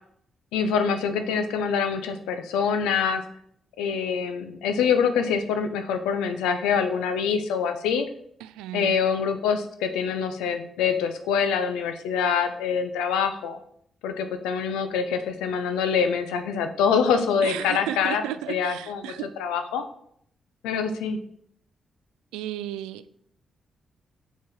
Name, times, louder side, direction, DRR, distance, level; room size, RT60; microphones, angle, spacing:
voice 1, 0.5-3.2 3.8-8.1 8.7-13.6 14.0-18.2 18.5-19.0 19.4-19.8 20.6-21.2, left 6 dB, 85° left, 8 dB, 0.7 m, -25 dB
voice 2, 8.4-9.0 17.4-19.3 22.3-23.2, right 12 dB, 85° right, 14 dB, 0.3 m, -34 dB
6.7 x 4.7 x 4.7 m, 0.68 s
hypercardioid pair, 45°, 0 cm